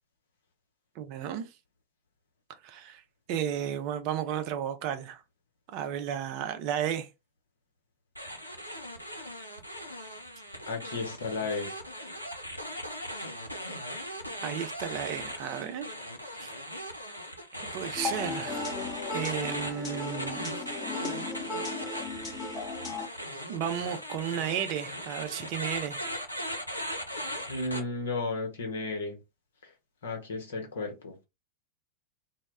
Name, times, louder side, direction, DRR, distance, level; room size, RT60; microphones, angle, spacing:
voice 1, 1.0-1.5 2.6-3.0 3.3-5.2 5.7-7.1 14.4-15.9 16.3-16.5 17.7-18.7 19.1-20.5 23.5-26.1, right 9 dB, 45° right, 0.4 m, -33 dB
sound 1, 8.2-27.8, equal, 90° left, 0.5 m, -39 dB
voice 2, 10.7-11.7 27.5-29.2 30.0-31.1, left 3 dB, 65° left, 0.8 m, -33 dB
sound 2, 17.9-23.1, left 3 dB, 20° left, 0.8 m, -36 dB
2.1 x 2.0 x 3.3 m
figure-of-eight pair, 90°, 0 cm